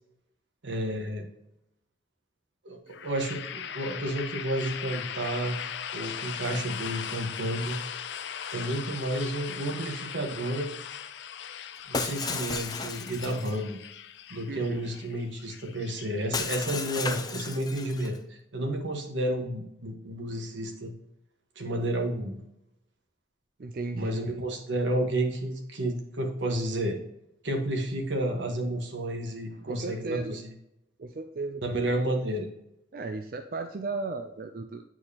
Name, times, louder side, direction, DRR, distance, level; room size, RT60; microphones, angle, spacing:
voice 1, 0.6-1.3 2.6-5.6 5.9-7.8 8.5-10.7 11.9-13.8 14.3-20.9 21.5-22.4 24.0-27.0 27.4-30.4 31.6-32.5, right 1 dB, 85° right, 3 dB, 1.4 m, -31 dB
sound 1, 2.9-16.7, left 8 dB, 75° left, 0.4 m, -39 dB
Shatter, 11.9-13.6 16.3-18.2, left 4 dB, 20° left, 0.5 m, -34 dB
voice 2, 14.5-14.8 23.6-24.2 29.5-30.4 31.0-31.8 32.9-34.8, right 3 dB, 50° right, 6 dB, 0.4 m, -35 dB
8.7 x 4.6 x 2.9 m, 0.82 s
head